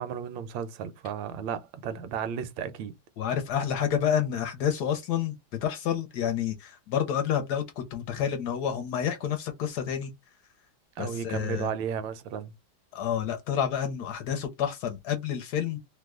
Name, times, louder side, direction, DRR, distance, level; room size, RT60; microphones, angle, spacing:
voice 1, 0.0-2.9 11.0-12.5, right 7 dB, 80° right, 1.3 m, -34 dB
voice 2, 3.2-5.4 5.6-10.1 11.0-11.7 12.9-15.8, left 8 dB, 70° left, 1.1 m, -29 dB
3.1 x 2.1 x 3.5 m
omnidirectional pair, 2.0 m